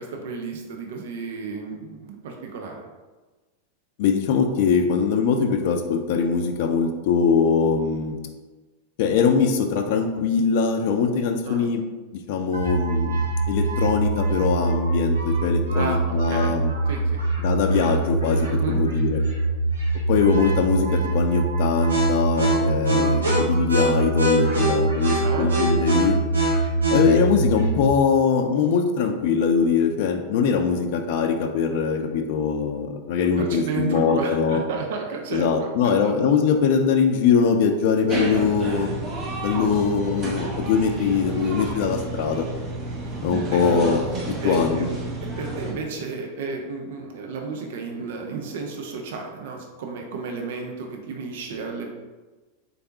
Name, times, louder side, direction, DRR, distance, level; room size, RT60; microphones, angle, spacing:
voice 1, 0.0-2.9 11.5-11.7 15.7-16.6 16.9-17.2 18.4-18.8 22.9-23.2 25.2-25.5 33.2-36.2 39.6-39.8 43.0-43.2 43.5-43.7 44.4-44.9 45.2-51.9, right 4 dB, 55° right, 2 dB, 0.5 m, -33 dB
voice 2, 4.0-8.2 9.0-11.8 12.3-13.2 13.5-16.7 17.4-19.2 20.1-26.2 26.9-34.6 35.3-38.9 39.4-42.4 43.2-44.1 44.4-44.9, left 6 dB, 50° left, 6 dB, 0.4 m, -22 dB
sound 1, 12.5-27.9, right 2 dB, 75° right, 1.0 m, -23 dB
sound 2, 38.1-45.7, right 2 dB, 30° right, 0.9 m, -30 dB
3.9 x 3.4 x 2.8 m, 1.3 s
figure-of-eight pair, 90°, 0 cm